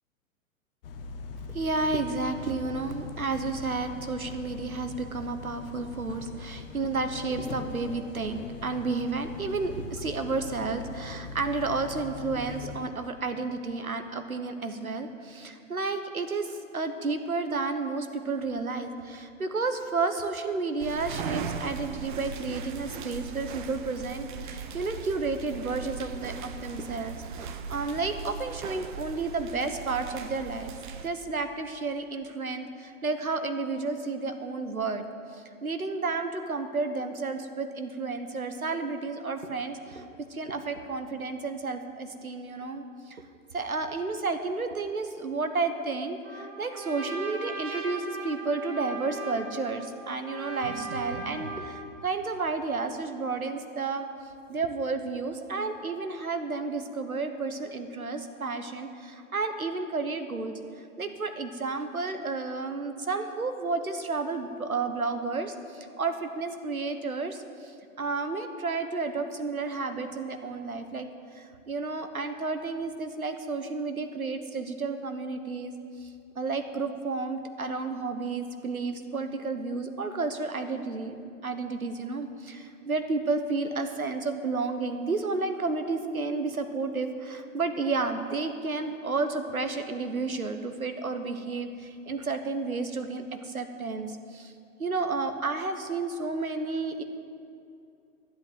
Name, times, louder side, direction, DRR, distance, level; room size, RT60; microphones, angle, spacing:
sound 1, 0.8-12.8, left 5 dB, 40° left, 1.0 m, -41 dB
voice 1, 1.5-30.7 31.0-35.0 35.3-43.2 43.5-54.1 54.5-60.5 61.0-67.7 68.0-71.1 71.3-75.8 76.3-81.1 81.4-94.5 94.8-97.0, right 3 dB, 85° right, 8 dB, 1.1 m, -31 dB
sound 2, 20.8-31.1, right 6 dB, 35° right, 0.8 m, -39 dB
Trumpet, 46.2-51.9, right 3 dB, 20° right, 1.3 m, -39 dB
12.0 x 8.1 x 7.6 m, 2.6 s
figure-of-eight pair, 115°, 42 cm